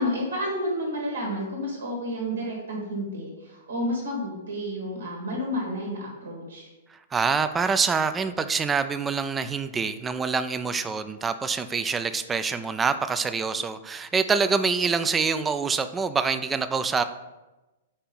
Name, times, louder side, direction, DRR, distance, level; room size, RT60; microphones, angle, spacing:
voice 1, 0.0-6.7, equal, 80° right, -2 dB, 1.4 m, -30 dB
voice 2, 7.1-17.0, right 5 dB, 15° right, 11 dB, 0.3 m, -25 dB
4.5 x 4.3 x 5.2 m, 1.1 s
hypercardioid pair, 115°, 0 cm